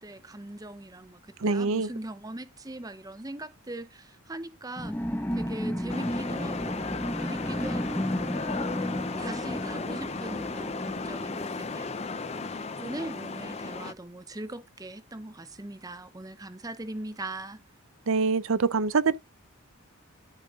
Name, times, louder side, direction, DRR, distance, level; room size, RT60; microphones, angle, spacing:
voice 1, 0.0-5.0 5.3-6.8 7.2-8.1 8.5-8.8 9.2-17.6, right 1 dB, 15° right, 0.7 m, -41 dB
voice 2, 1.4-1.9 18.1-19.2, right 4 dB, 70° right, 0.6 m, -24 dB
sound 1, 4.8-12.9, equal, 10° left, 1.3 m, -34 dB
sound 2, 5.9-13.9, left 4 dB, 30° left, 0.6 m, -35 dB
12.5 x 5.4 x 3.6 m
head